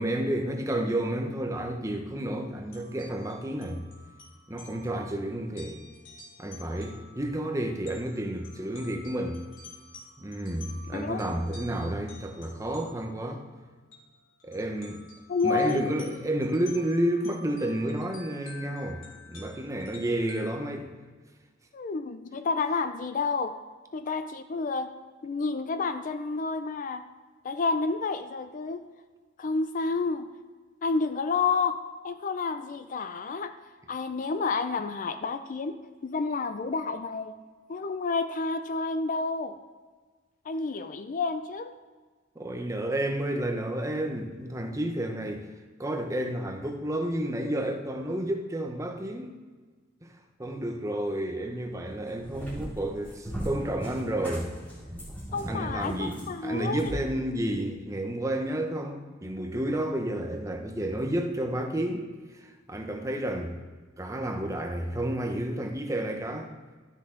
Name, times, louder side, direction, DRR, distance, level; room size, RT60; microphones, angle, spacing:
voice 1, 0.0-3.8 4.5-5.8 6.4-9.4 10.2-13.4 14.4-15.0 15.4-19.0 19.3-20.9 42.4-45.5 45.8-49.4 50.0-50.1 50.4-54.5 55.5-62.1 62.4-63.5 64.0-66.5, right 1 dB, 15° right, 5 dB, 0.8 m, -31 dB
sound 1, 2.6-13.2 13.9-14.0 14.4-20.5, left 2 dB, 85° left, 2.4 m, -50 dB
voice 2, 10.9-11.2 15.3-15.8 21.7-23.5 23.9-24.9 25.2-27.0 27.4-28.8 29.4-30.3 30.8-31.8 32.0-33.5 33.9-35.8 36.0-37.3 37.7-39.5 40.5-41.7 55.3-56.9, left 4 dB, 45° left, 9 dB, 0.4 m, -29 dB
Cat, 51.9-57.0, equal, 5° left, 3.0 m, -38 dB
12.5 x 5.9 x 3.7 m, 1.4 s
head